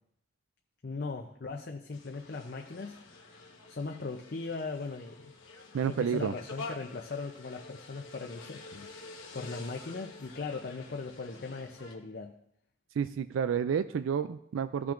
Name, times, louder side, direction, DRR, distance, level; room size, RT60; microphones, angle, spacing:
voice 1, 0.8-3.0 3.7-5.3 5.8-12.3, left 3 dB, 55° left, 2 dB, 0.6 m, -39 dB
sound 1, 1.9-11.9, left 3 dB, 90° left, 1.2 m, -48 dB
voice 2, 5.7-6.3 13.0-14.9, right 7 dB, 90° right, 12 dB, 0.3 m, -30 dB
15.0 x 5.9 x 2.5 m, 0.72 s
head